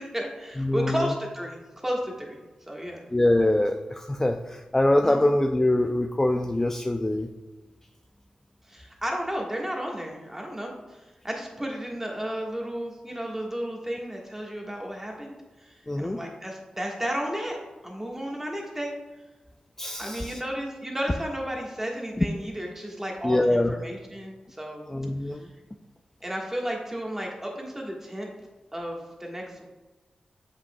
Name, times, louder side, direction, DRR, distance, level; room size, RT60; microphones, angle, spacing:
voice 1, 0.0-2.4 2.7-3.0 5.0-5.4 8.7-11.0 11.2-17.6 17.8-18.9 20.0-24.8 26.2-28.3 28.7-29.7, equal, 15° right, 0 dB, 1.5 m, -33 dB
voice 2, 0.6-1.1 3.1-7.3 15.9-16.2 19.8-20.4 22.2-22.3 23.2-23.7 24.9-25.5, left 1 dB, 15° left, 4 dB, 0.4 m, -24 dB
7.6 x 5.6 x 2.3 m, 1.2 s
cardioid pair, 60°, 2 cm